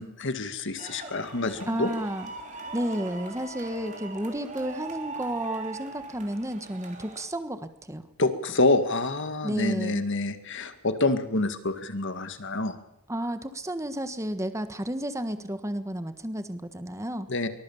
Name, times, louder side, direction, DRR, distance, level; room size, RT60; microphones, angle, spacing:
voice 1, 0.0-1.9 8.2-12.8 17.3-17.5, left 2 dB, 60° left, 9 dB, 1.9 m, -27 dB
sound 1, 0.8-7.2, right 4 dB, 35° right, 3.8 m, -40 dB
voice 2, 1.7-2.3 2.7-8.0 9.4-10.0 13.1-17.3, equal, 15° right, 10 dB, 1.4 m, -32 dB
23.5 x 20.5 x 7.2 m, 0.87 s
head